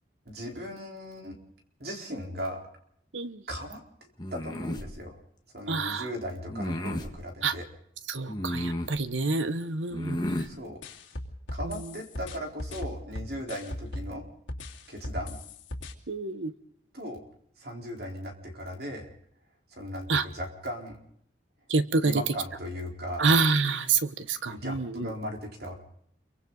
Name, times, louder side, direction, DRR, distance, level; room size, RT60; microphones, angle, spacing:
voice 1, 0.3-1.4 1.8-2.6 3.5-5.2 5.5-7.7 10.4-10.8 11.5-14.3 14.9-15.4 16.9-17.2 17.6-19.1 19.7-21.0 22.0-23.3 24.5-25.8, equal, 55° right, 1 dB, 4.2 m, -37 dB
sound 1, 4.2-4.9 6.5-7.1 8.3-9.0 9.9-10.5, left 1 dB, 20° left, 1.7 m, -32 dB
voice 2, 5.7-6.1 7.4-7.6 8.1-10.5 11.6-11.9 16.1-16.5 20.1-20.3 21.7-22.2 23.2-25.1, right 4 dB, 90° right, 11 dB, 1.2 m, -27 dB
sound 2, 10.8-14.2 14.5-15.9, left 1 dB, 90° left, 2.8 m, -37 dB
27.5 x 24.0 x 4.1 m, 0.71 s
head